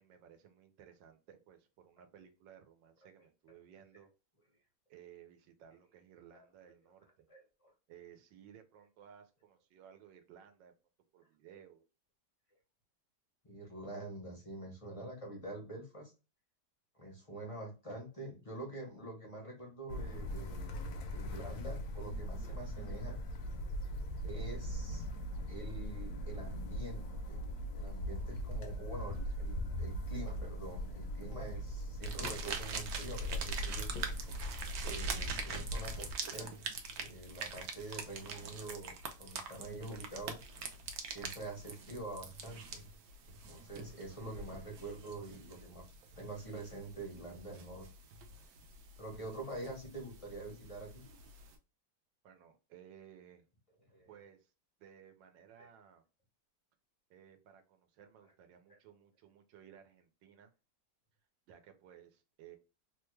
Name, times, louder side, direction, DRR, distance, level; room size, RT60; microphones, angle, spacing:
voice 1, 0.0-4.1 4.9-7.3 7.9-10.7 11.1-11.9 52.2-53.5 54.1-54.5 54.8-56.0 57.1-60.5 61.5-62.6, right 9 dB, 90° right, 7 dB, 1.3 m, -58 dB
voice 2, 7.3-7.7 13.4-16.1 16.9-20.7 21.1-23.2 24.2-25.1 25.5-27.4 27.7-34.0 34.8-36.6 37.0-40.4 41.0-42.8 43.5-45.8 46.1-47.9 49.0-51.0 53.9-54.1, right 2 dB, 35° left, -1 dB, 0.5 m, -46 dB
sound 1, 19.9-36.1, equal, 70° left, 1.0 m, -40 dB
sound 2, 32.0-51.6, right 5 dB, 70° right, 0.9 m, -45 dB
3.2 x 2.2 x 3.1 m, 0.31 s
omnidirectional pair, 1.9 m